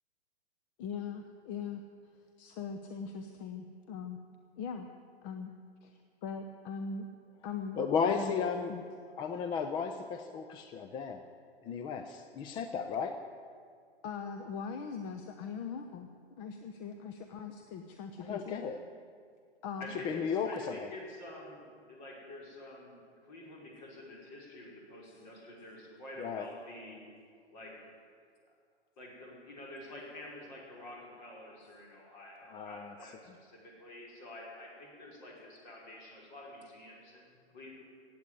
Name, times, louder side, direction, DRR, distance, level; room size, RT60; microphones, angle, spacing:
voice 1, 0.8-1.8 2.4-4.2 4.6-4.9 5.2-5.5 5.8-7.1 7.4-8.4 8.7-8.8 14.0-16.1 16.4-18.6 19.6-19.9 33.3-33.4, left 6 dB, 30° left, 6 dB, 0.9 m, -41 dB
voice 2, 7.8-8.7 9.2-11.2 11.6-13.2 18.2-18.8 20.0-20.9 26.2-26.5 32.5-32.9, left 6 dB, 15° left, 8 dB, 0.5 m, -34 dB
voice 3, 19.8-21.6 21.9-27.0 27.5-27.9 29.0-37.7, left 1 dB, 45° left, -2 dB, 5.4 m, -48 dB
16.5 x 8.6 x 9.6 m, 2.2 s
figure-of-eight pair, 115°, 32 cm